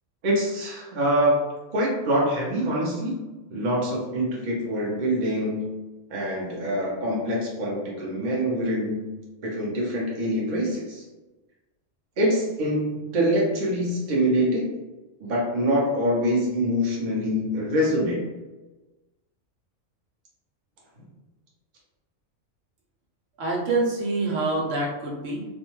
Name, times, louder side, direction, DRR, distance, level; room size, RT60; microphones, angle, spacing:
voice 1, 0.2-1.3 1.7-3.2 3.5-5.7 6.1-9.1 9.4-11.0 12.2-14.7 15.2-18.2, equal, 45° right, -4 dB, 0.7 m, -25 dB
voice 2, 23.4-25.5, right 2 dB, 75° right, -2 dB, 1.1 m, -26 dB
2.5 x 2.3 x 3.0 m, 1.1 s
omnidirectional pair, 1.3 m